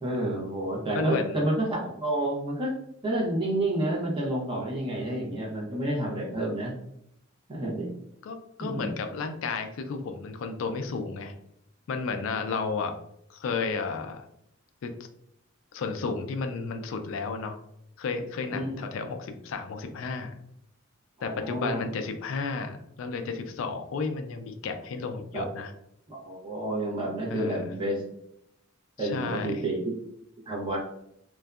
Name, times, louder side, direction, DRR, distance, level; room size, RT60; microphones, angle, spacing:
voice 1, 0.0-2.7 3.0-6.7 7.5-7.9 8.6-9.0 12.5-12.6 18.5-18.8 21.2-21.8 25.3-25.4 26.1-28.0 29.0-29.9 30.5-30.8, right 1 dB, 25° right, -4 dB, 0.8 m, -29 dB
voice 2, 0.9-1.4 8.2-11.3 11.9-12.9 13.3-14.3 14.8-14.9 15.7-17.6 18.0-20.3 21.2-25.7 27.3-27.7 29.0-29.6, left 4 dB, 65° left, 6 dB, 0.3 m, -32 dB
2.6 x 2.2 x 2.3 m, 0.76 s
head